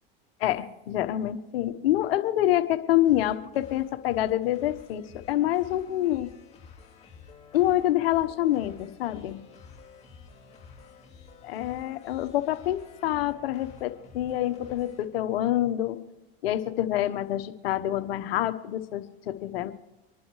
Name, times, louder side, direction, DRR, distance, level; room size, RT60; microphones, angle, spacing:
voice 1, 0.4-6.3 7.5-9.4 11.4-16.0 16.4-19.7, left 13 dB, 80° left, 10 dB, 1.2 m, -27 dB
sound 1, 3.0-15.0, left 5 dB, 20° left, 4.6 m, -50 dB
25.0 x 11.5 x 3.2 m, 1.1 s
hypercardioid pair, 95°, 30 cm